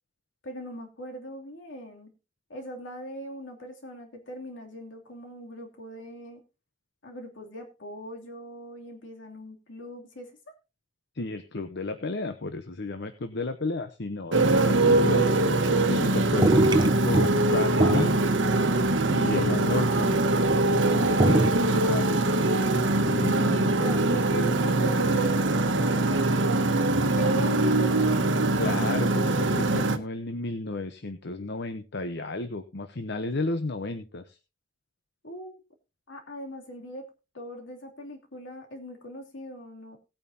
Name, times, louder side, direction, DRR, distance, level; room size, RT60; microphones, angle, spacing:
voice 1, 0.4-2.1 2.5-6.4 7.0-10.5 23.0-26.2 27.2-28.1 35.2-35.6 36.1-37.0 37.3-40.0, equal, 80° left, 2 dB, 2.9 m, -40 dB
voice 2, 11.1-15.5 15.9-18.4 19.1-20.2 20.6-22.3 23.0-23.9 28.6-34.4, left 2 dB, 65° left, 9 dB, 0.9 m, -33 dB
Motorcycle, 14.3-30.0, right 2 dB, 80° right, 1.2 m, -23 dB
sound 1, 14.5-15.1 15.4-16.1 16.3-17.4 17.7-20.6 20.9-21.8, right 1 dB, 25° right, 0.8 m, -24 dB
18.0 x 8.9 x 2.8 m, 0.29 s
head